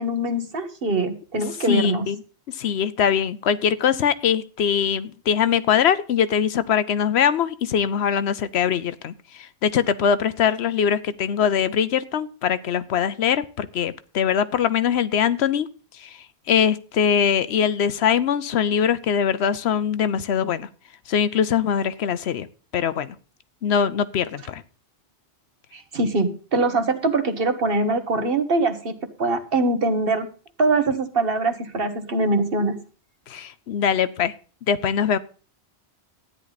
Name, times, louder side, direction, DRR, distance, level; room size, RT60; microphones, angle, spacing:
voice 1, 0.0-2.1 25.7-28.9 29.2-30.3 30.6-32.8, right 2 dB, 60° right, 8 dB, 1.5 m, -23 dB
voice 2, 1.7-2.2 2.6-9.1 9.6-15.7 16.0-16.1 16.5-20.7 21.1-22.5 22.7-23.2 23.6-24.6 33.3-34.3 34.7-35.2, left 8 dB, 75° left, 14 dB, 1.0 m, -22 dB
13.0 x 9.8 x 4.1 m, 0.39 s
omnidirectional pair, 1.1 m